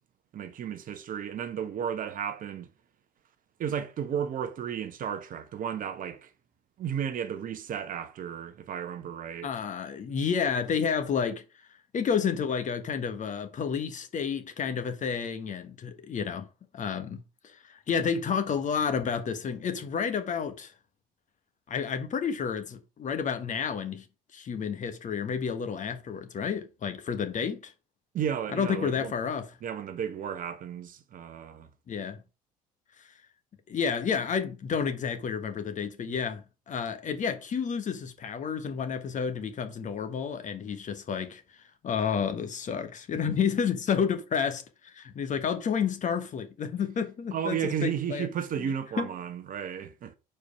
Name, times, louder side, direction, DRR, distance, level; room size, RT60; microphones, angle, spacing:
voice 1, 0.3-2.7 3.6-6.3 6.8-9.5 28.1-29.1 29.6-31.7 47.3-50.1, right 8 dB, 45° right, 1.0 m, -33 dB
voice 2, 9.4-11.4 11.9-16.5 16.7-20.7 21.7-24.0 24.3-27.7 28.5-29.5 31.9-32.2 33.7-41.4 41.8-48.3 49.0-49.1, left 6 dB, 40° left, 1.3 m, -30 dB
5.0 x 4.5 x 5.0 m
hypercardioid pair, 65°, 19 cm